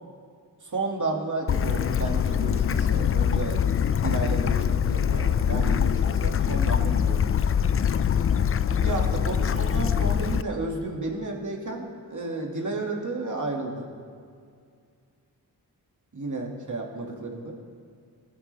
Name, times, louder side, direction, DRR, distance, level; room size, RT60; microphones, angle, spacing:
voice 1, 0.6-3.6 4.0-7.4 8.6-13.9 16.1-17.5, right 3 dB, 45° right, 0 dB, 2.3 m, -32 dB
Bird / Stream, 1.5-10.4, left 8 dB, 35° left, 0.4 m, -23 dB
19.5 x 9.6 x 3.4 m, 2.2 s
cardioid pair, 65°, 40 cm